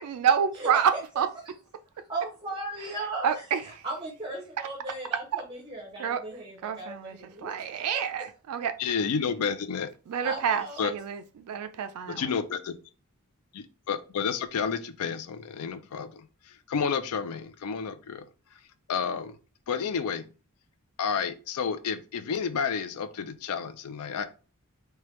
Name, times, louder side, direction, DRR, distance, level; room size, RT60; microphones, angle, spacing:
voice 1, 0.0-1.3 3.2-3.8 5.3-5.4 6.0-6.2 6.6-8.7 10.1-12.3, right 7 dB, 70° right, 0.3 m, -28 dB
voice 2, 2.1-3.3 3.8-8.0 10.2-10.8, right 2 dB, 25° right, 0.6 m, -37 dB
voice 3, 8.8-9.9 10.8-10.9 12.1-12.7 13.5-18.3 18.5-18.6 18.9-19.4 19.7-20.3 21.0-24.3, left 6 dB, 75° left, 0.4 m, -31 dB
3.2 x 2.2 x 3.0 m
head